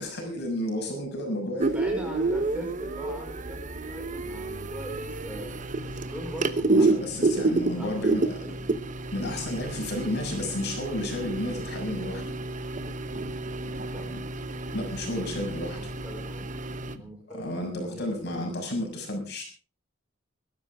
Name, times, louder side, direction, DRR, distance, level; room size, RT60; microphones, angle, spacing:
voice 1, 0.0-1.8 6.7-8.5 9.1-12.2 14.1-14.2 14.7-15.8 17.3-19.4, left 1 dB, 55° left, 2 dB, 6.6 m, -32 dB
sound 1, 1.6-17.0, right 2 dB, 40° right, 1.0 m, -30 dB
voice 2, 1.7-8.6 13.9-14.1 15.7-16.5 17.0-18.5, equal, 5° right, 1 dB, 5.3 m, -41 dB
22.0 x 13.0 x 3.6 m, 0.37 s
head